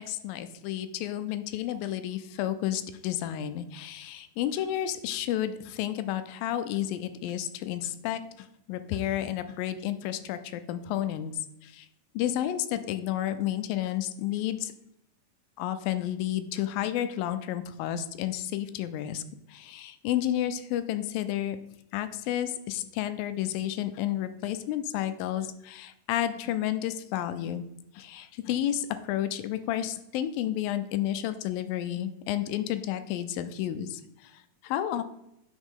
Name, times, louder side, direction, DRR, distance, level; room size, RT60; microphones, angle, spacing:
voice 1, 0.0-11.3 11.6-11.9 12.1-14.7 15.6-19.2 19.5-21.6 21.9-27.7 28.0-35.0, left 12 dB, 90° left, 11 dB, 2.3 m, -31 dB
9.8 x 4.1 x 3.6 m, 0.82 s
omnidirectional pair, 4.0 m